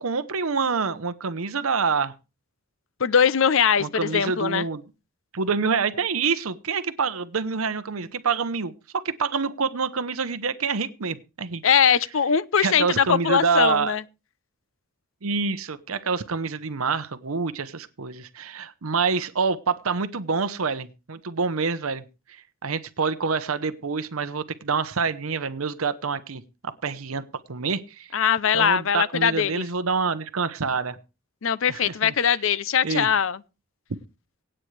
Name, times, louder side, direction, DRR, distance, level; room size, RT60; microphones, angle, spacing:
voice 1, 0.0-2.1 3.8-4.8 5.3-11.6 12.6-14.0 15.2-22.0 22.3-27.2 27.5-28.1 28.5-31.0 31.7-32.1 32.8-33.1, right 5 dB, 90° right, 0.9 m, -27 dB
voice 2, 3.0-4.7 11.6-14.0 28.1-29.6 31.4-33.4, left 7 dB, 70° left, 0.6 m, -21 dB
24.5 x 8.9 x 3.3 m
head